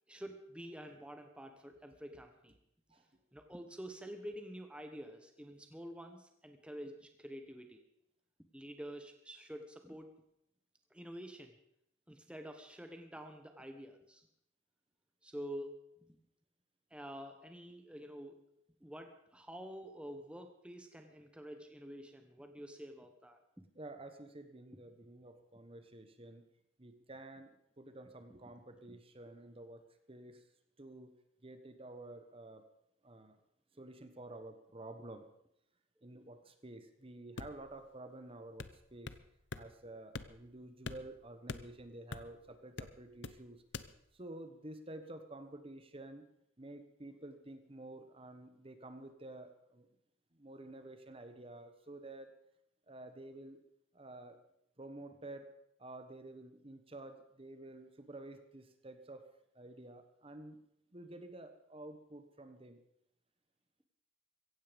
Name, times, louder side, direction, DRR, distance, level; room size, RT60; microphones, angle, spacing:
voice 1, 0.1-2.6 3.3-7.8 8.5-10.1 10.9-11.6 12.1-14.3 15.2-15.7 16.0-16.2 16.9-18.4 18.8-23.6 28.9-29.0, equal, 5° right, 5 dB, 1.2 m, -48 dB
voice 2, 23.7-26.4 26.8-30.4 30.8-32.6 33.0-33.4 33.8-35.3 36.0-39.1 39.6-43.6 44.1-46.2 46.6-49.9 50.3-52.3 52.9-53.6 53.9-54.4 54.8-55.5 55.8-59.3 59.5-60.6 60.9-62.8, right 2 dB, 30° right, 8 dB, 1.2 m, -50 dB
sound 1, 37.4-37.8 38.6-39.2 39.5-39.7 40.1-40.5 40.9-42.4 42.8-43.4 43.7-43.9, left 3 dB, 60° left, 0.8 m, -45 dB
16.0 x 15.5 x 5.2 m, 0.75 s
head